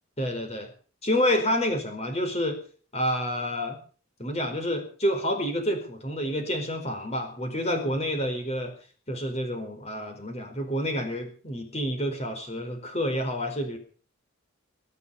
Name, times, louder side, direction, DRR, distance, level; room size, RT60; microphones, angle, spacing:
voice 1, 0.2-0.7 1.0-2.6 2.9-3.8 4.2-8.7 9.1-13.8, equal, 30° left, 5 dB, 4.6 m, -28 dB
22.5 x 8.4 x 7.1 m, 0.42 s
head